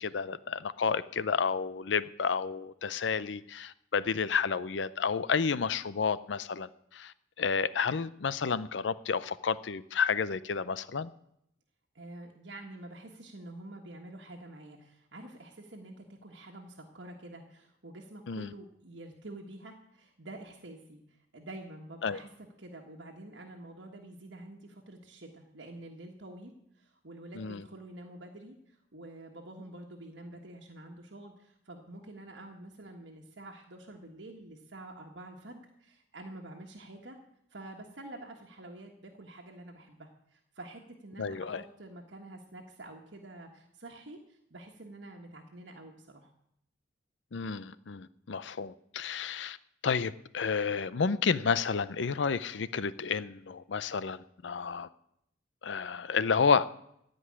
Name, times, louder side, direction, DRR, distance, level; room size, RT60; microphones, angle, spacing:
voice 1, 0.0-11.1 18.3-18.5 22.0-22.2 27.4-27.6 41.2-41.6 47.3-49.6 49.8-54.9 55.6-56.7, left 5 dB, 80° left, 16 dB, 0.6 m, -31 dB
voice 2, 11.9-37.2 37.5-46.3, right 1 dB, 75° right, 1 dB, 1.5 m, -48 dB
15.5 x 5.3 x 9.8 m, 0.75 s
head